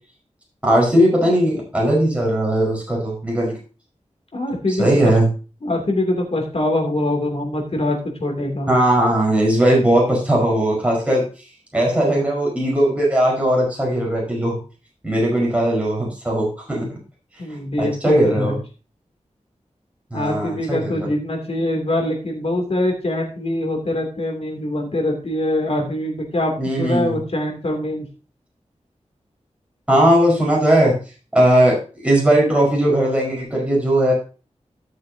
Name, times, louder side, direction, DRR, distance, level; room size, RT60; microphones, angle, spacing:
voice 1, 0.6-3.5 4.8-5.3 8.7-11.2 11.7-14.6 15.0-16.9 17.8-18.6 20.1-21.1 26.6-27.2 29.9-30.9 31.3-34.1, right 1 dB, 10° right, -3 dB, 5.0 m, -18 dB
voice 2, 4.3-5.1 5.6-8.7 17.4-18.5 20.1-28.0, left 1 dB, 55° left, 1 dB, 3.0 m, -23 dB
14.0 x 7.0 x 2.9 m, 0.34 s
wide cardioid pair, 85°, 12 cm